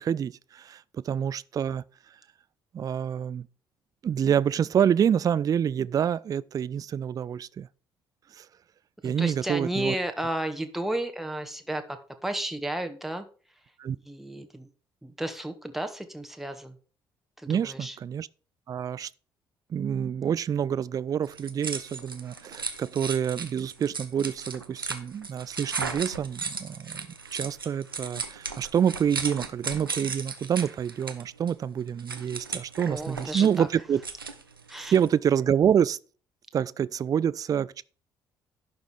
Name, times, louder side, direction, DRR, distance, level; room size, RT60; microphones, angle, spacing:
voice 1, 0.0-1.8 2.7-3.5 4.0-7.7 8.3-8.5 9.0-10.0 13.8-14.0 17.5-18.3 18.7-19.1 19.7-34.0 34.8-36.0 36.5-37.8, right 8 dB, 30° right, 0.3 m, -27 dB
voice 2, 9.0-12.0 12.2-13.2 14.1-14.7 15.0-16.8 17.4-18.0 32.8-33.7 34.7-34.9, right 1 dB, ahead, 1.4 m, -33 dB
sound 1, 21.2-35.1, right 4 dB, 85° right, 0.7 m, -36 dB
11.0 x 5.4 x 4.7 m
figure-of-eight pair, 45°, 12 cm